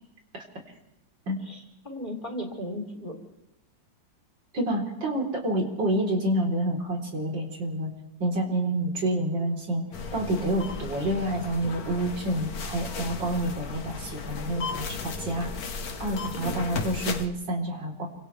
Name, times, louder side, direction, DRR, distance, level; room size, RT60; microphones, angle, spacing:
voice 1, 1.4-3.1 16.3-16.6, left 1 dB, 25° left, 1 dB, 3.9 m, -36 dB
voice 2, 4.5-7.9 8.2-9.8 10.1-15.5 16.0-18.1, right 1 dB, 75° right, -1 dB, 4.8 m, -28 dB
sound 1, 9.9-17.3, left 4 dB, 55° left, 1.7 m, -35 dB
30.0 x 25.5 x 3.5 m, 0.85 s
omnidirectional pair, 2.0 m